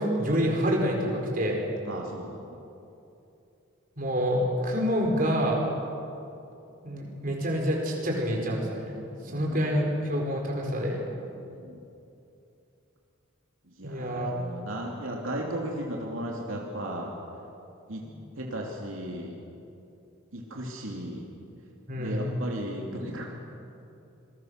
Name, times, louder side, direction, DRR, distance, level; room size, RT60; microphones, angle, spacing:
voice 1, 0.0-1.6 4.0-5.6 6.8-8.9 9.2-11.0 13.8-14.3 18.0-18.1 21.9-22.3, equal, 40° right, -1 dB, 4.9 m, -27 dB
voice 2, 1.9-2.5 9.1-9.6 11.5-11.8 13.8-17.1 17.9-18.0 18.4-19.3 20.3-21.3 22.0-23.2, right 1 dB, 75° right, -1 dB, 2.8 m, -35 dB
27.0 x 22.5 x 6.6 m, 2.7 s
head